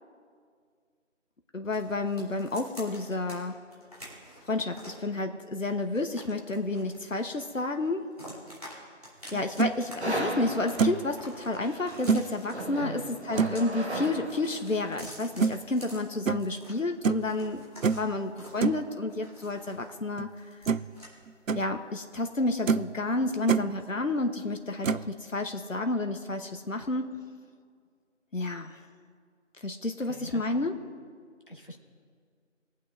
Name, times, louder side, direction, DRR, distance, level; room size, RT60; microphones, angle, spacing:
voice 1, 1.5-3.6 4.5-8.1 9.3-13.0 13.3-17.6 17.9-20.5 21.5-27.2 28.3-28.8 29.6-30.8, left 2 dB, 80° left, 6 dB, 1.0 m, -30 dB
sound 1, 1.7-3.4 3.7-5.0 5.5-7.6 7.8-8.7 9.0-9.9 10.2-12.5 13.2-14.1 14.4-16.7 17.1-20.0 20.3-21.1, equal, 30° right, 3.2 m, -48 dB
sound 2, 9.3-9.7 10.3-10.4 10.8-11.1 12.1-12.3 13.4-13.6 15.4-15.5 16.3-16.5 17.0-17.3 17.8-18.1 18.6-18.8 20.2-20.3 20.7-21.0 21.3-21.6 22.2-22.3 22.7-22.9 23.2-23.7 24.8-25.1, right 5 dB, 90° right, 0.5 m, -26 dB
sound 3, 10.0-14.9, right 1 dB, 55° right, 1.2 m, -36 dB
voice 2, 12.8-13.1 30.0-30.7 31.5-31.8, equal, 45° left, 1 dB, 1.3 m, -43 dB
22.0 x 8.5 x 2.5 m, 2.1 s
figure-of-eight pair, 180°, 38 cm